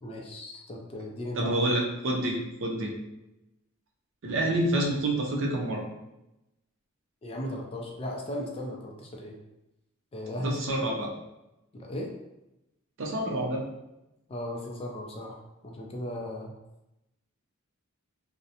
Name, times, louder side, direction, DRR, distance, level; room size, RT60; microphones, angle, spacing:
voice 1, 0.0-1.6 7.2-9.4 10.1-10.8 11.7-12.1 14.3-16.5, left 1 dB, 25° left, 0 dB, 0.3 m, -36 dB
voice 2, 1.4-2.9 4.2-5.8 10.4-11.1 13.0-13.6, right 1 dB, 65° right, -1 dB, 0.5 m, -28 dB
2.5 x 2.0 x 2.7 m, 0.92 s
head